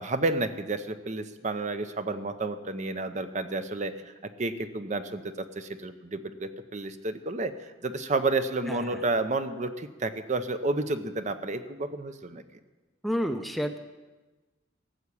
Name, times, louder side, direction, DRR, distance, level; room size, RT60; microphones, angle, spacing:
voice 1, 0.0-4.1 4.4-12.4, right 2 dB, 40° right, 10 dB, 0.6 m, -31 dB
voice 2, 8.7-9.0 13.0-13.8, equal, ahead, 6 dB, 0.5 m, -30 dB
14.5 x 7.2 x 8.3 m, 1.2 s
head